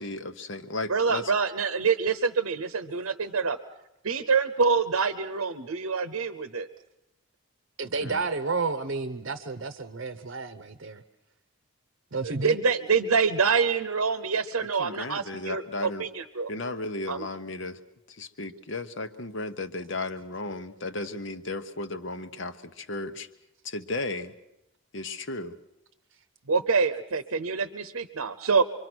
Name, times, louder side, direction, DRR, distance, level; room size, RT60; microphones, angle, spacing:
voice 1, 0.0-1.3 8.0-8.2 14.8-16.0 16.5-17.8 18.2-23.3 23.6-24.3 24.9-25.6, left 2 dB, 55° left, 9 dB, 1.0 m, -35 dB
voice 2, 0.9-3.6 4.0-6.7 12.2-16.5 17.1-17.3 26.5-28.6, right 5 dB, 85° right, 10 dB, 0.9 m, -26 dB
voice 3, 7.8-11.0 12.1-12.6, right 4 dB, 55° right, 11 dB, 0.8 m, -31 dB
25.5 x 24.0 x 6.2 m, 0.90 s
head